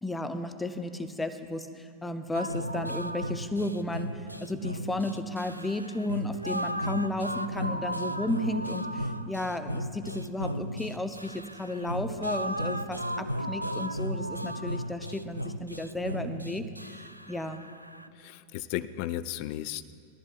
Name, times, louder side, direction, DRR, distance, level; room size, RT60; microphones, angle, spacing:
voice 1, 0.0-16.7 17.3-17.7, left 1 dB, 5° left, 8 dB, 0.7 m, -33 dB
sound 1, 2.3-18.1, equal, 90° right, 0.3 m, -35 dB
voice 2, 18.1-19.9, left 13 dB, 45° left, 15 dB, 0.4 m, -35 dB
21.0 x 14.0 x 2.4 m, 2.4 s
figure-of-eight pair, 90°, 0 cm